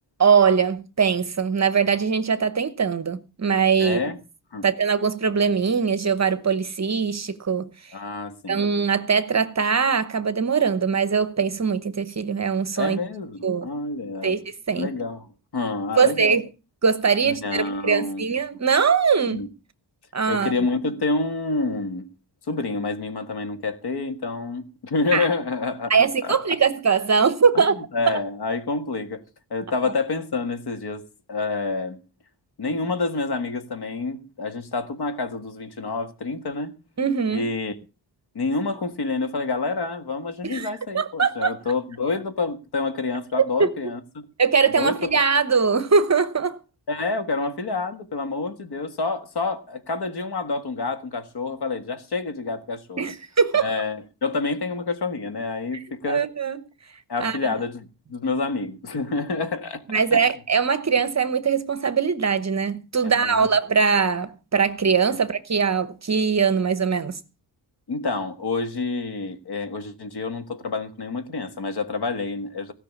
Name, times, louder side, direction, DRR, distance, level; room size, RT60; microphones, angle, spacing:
voice 1, 0.2-4.0 4.6-7.7 8.5-13.0 13.4-13.7 14.2-14.4 14.7-14.9 16.0-16.4 16.8-19.5 20.1-20.5 25.1-25.3 25.9-27.8 37.0-37.5 40.4-40.7 40.9-41.5 43.3-43.7 44.4-46.6 53.0-53.7 55.7-56.6 57.2-57.4 59.9-67.2, right 6 dB, 40° right, 1.0 m, -21 dB
voice 2, 3.8-4.2 4.5-4.7 7.9-8.7 12.8-14.4 14.7-16.4 17.2-18.3 19.3-19.5 20.3-22.1 22.5-25.9 26.2-26.3 27.5-29.2 29.5-32.0 32.6-36.7 37.3-37.7 38.3-44.0 44.8-45.2 46.9-53.1 53.6-56.2 57.1-59.8 60.1-60.3 63.0-63.5 67.9-72.7, left 3 dB, 60° left, 1.8 m, -28 dB
17.0 x 5.9 x 8.4 m
wide cardioid pair, 165°, 43 cm